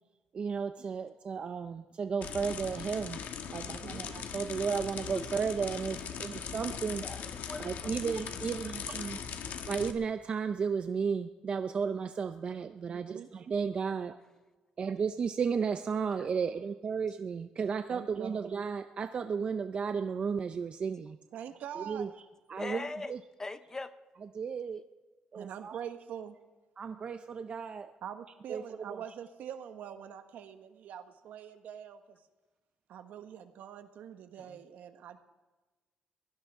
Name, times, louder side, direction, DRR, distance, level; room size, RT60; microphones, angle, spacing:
voice 1, 0.3-3.2 3.5-7.0 7.6-9.2 9.7-14.2 14.8-21.2 21.8-22.1 22.5-23.2 24.3-24.8 25.3-25.8 26.8-27.9 28.5-28.6 28.9-29.0, right 6 dB, 35° right, 8 dB, 0.5 m, -34 dB
sound 1, 2.2-9.9, left 7 dB, 65° left, 1.3 m, -40 dB
voice 2, 3.5-4.0 6.2-6.4 12.9-13.3 17.9-18.4 21.3-22.1 25.3-26.4 28.0-32.2 32.9-35.2, right 9 dB, 75° right, 8 dB, 1.3 m, -44 dB
voice 3, 7.0-8.2 22.6-23.9 34.4-34.6, left 3 dB, 20° left, 12 dB, 0.6 m, -41 dB
23.0 x 17.0 x 3.7 m, 1.2 s
cardioid pair, 155°, 3 cm